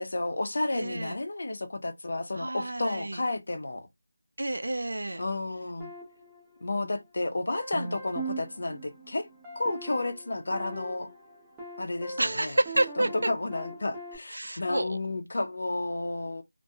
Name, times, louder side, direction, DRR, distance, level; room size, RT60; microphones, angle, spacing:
voice 1, 0.0-3.9 5.2-5.9 6.6-9.3 9.6-11.1 11.8-12.6 13.0-16.4, left 2 dB, 50° left, 0.6 m, -32 dB
voice 2, 0.7-1.2 2.4-3.2 4.4-5.2 12.2-13.1 14.3-15.0, right 1 dB, 70° right, 0.4 m, -29 dB
sound 1, 5.8-7.1 7.5-14.1, right 2 dB, 5° right, 0.6 m, -41 dB
2.3 x 2.2 x 2.7 m
figure-of-eight pair, 175°, 0 cm